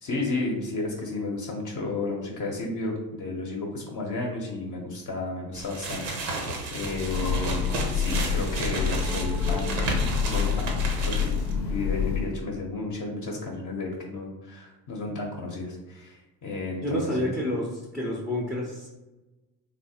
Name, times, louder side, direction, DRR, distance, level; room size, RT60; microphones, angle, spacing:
voice 1, 0.0-7.6 7.9-17.3, left 2 dB, 40° left, -1 dB, 0.6 m, -33 dB
sound 1, 5.5-11.5, right 3 dB, 85° right, 0.7 m, -33 dB
Train, 6.8-12.5, left 6 dB, 80° left, 0.6 m, -27 dB
voice 2, 16.8-18.9, left 1 dB, ahead, -3 dB, 0.4 m, -29 dB
3.2 x 2.0 x 2.7 m, 1.1 s
hypercardioid pair, 65°, 49 cm